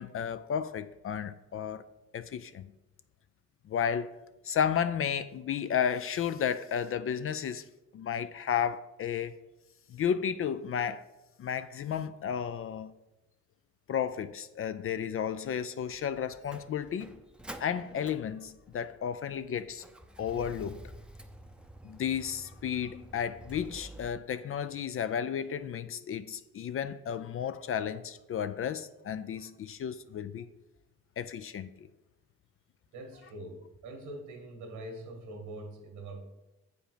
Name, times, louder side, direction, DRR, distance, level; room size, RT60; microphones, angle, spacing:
voice 1, 0.0-1.8 2.1-2.7 3.7-4.1 4.4-7.7 7.9-9.4 9.9-11.0 11.4-12.9 13.9-17.2 17.6-19.8 20.2-20.8 21.8-30.5 31.2-31.9, left 8 dB, 45° left, 0.4 m, -33 dB
Motor vehicle (road), 15.8-24.1, right 1 dB, 5° right, 0.6 m, -50 dB
voice 2, 32.9-36.3, right 1 dB, 90° right, 1.9 m, -43 dB
7.7 x 5.2 x 5.0 m
cardioid pair, 90°, 30 cm